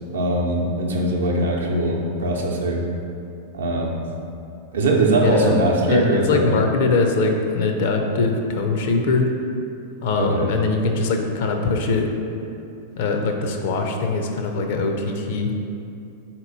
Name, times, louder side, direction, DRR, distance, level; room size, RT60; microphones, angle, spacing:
voice 1, 0.1-2.8 3.5-4.0 4.7-6.4 10.1-10.5, right 2 dB, 75° right, -1 dB, 0.6 m, -21 dB
voice 2, 5.2-9.3 10.0-12.1 13.0-15.5, left 3 dB, 60° left, 3 dB, 0.5 m, -22 dB
4.0 x 2.9 x 4.0 m, 2.6 s
hypercardioid pair, 95°, 0 cm